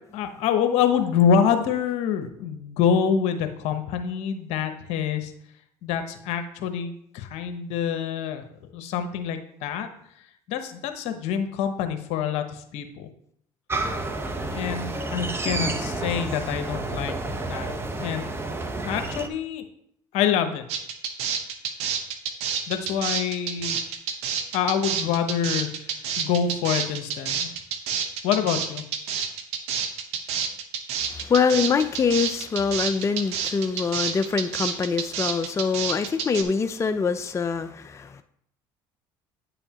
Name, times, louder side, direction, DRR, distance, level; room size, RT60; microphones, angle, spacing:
voice 1, 0.1-5.3 5.8-8.4 8.7-9.9 10.5-13.1 14.5-17.2 17.5-17.7 18.0-18.3 18.8-19.6 20.1-20.6 22.7-23.8 24.5-25.7 26.2-27.5 28.2-28.8, left 7 dB, 70° left, 7 dB, 0.9 m, -26 dB
sound 1, 13.7-19.3, right 2 dB, 20° right, 1.0 m, -30 dB
sound 2, 20.7-36.4, right 7 dB, 70° right, 1.0 m, -28 dB
voice 2, 31.1-38.2, left 5 dB, 25° left, 8 dB, 0.5 m, -24 dB
9.5 x 7.0 x 2.9 m, 0.69 s
supercardioid pair, 75°, 11 cm